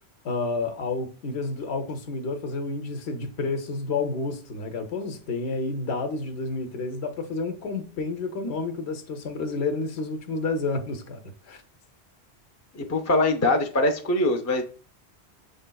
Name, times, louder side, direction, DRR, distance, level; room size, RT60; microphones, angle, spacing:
voice 1, 0.2-11.2 11.4-11.6, left 3 dB, 75° left, 1.0 m, -30 dB
voice 2, 12.7-14.6, left 2 dB, 25° left, 0.3 m, -23 dB
6.5 x 3.5 x 2.2 m
omnidirectional pair, 1.1 m